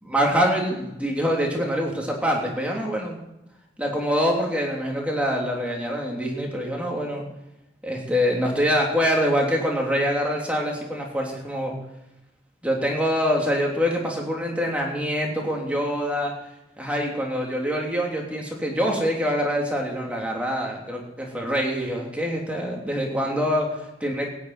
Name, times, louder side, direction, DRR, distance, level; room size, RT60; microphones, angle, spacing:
voice 1, 0.0-3.2 3.8-7.3 7.8-11.7 12.6-16.3 16.8-24.3, equal, 10° right, -1 dB, 3.1 m, -25 dB
16.0 x 7.0 x 9.1 m, 0.91 s
head